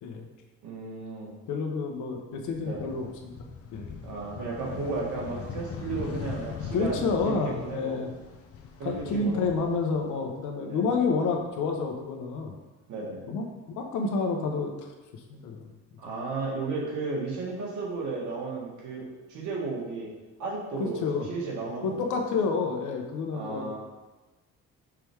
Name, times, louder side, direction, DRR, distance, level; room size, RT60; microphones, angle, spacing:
voice 1, 0.6-1.3 2.6-2.9 4.0-8.0 8.8-9.5 10.6-10.9 12.9-13.2 16.0-20.1 20.4-21.0 21.3-22.1 23.3-23.8, right 3 dB, 80° right, -3 dB, 1.8 m, -34 dB
voice 2, 1.5-3.9 6.7-8.1 8.8-12.5 13.3-13.4 13.8-14.7 15.3-15.7 20.8-21.3 21.8-23.6, left 4 dB, 85° left, 3 dB, 1.0 m, -29 dB
sound 1, 2.4-10.5 10.8-12.0, left 6 dB, 50° left, 0.7 m, -41 dB
6.0 x 3.4 x 4.6 m, 1.2 s
cardioid pair, 110°, 30 cm